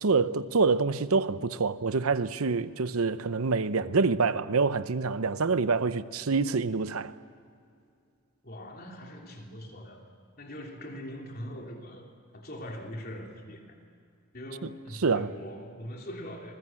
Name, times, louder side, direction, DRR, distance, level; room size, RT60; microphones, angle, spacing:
voice 1, 0.0-7.1 14.6-14.7 15.0-15.3, right 4 dB, 85° right, 0.8 m, -26 dB
voice 2, 8.4-10.0 10.4-13.6 14.3-16.5, equal, 45° left, 3.1 m, -42 dB
26.5 x 20.5 x 7.7 m
head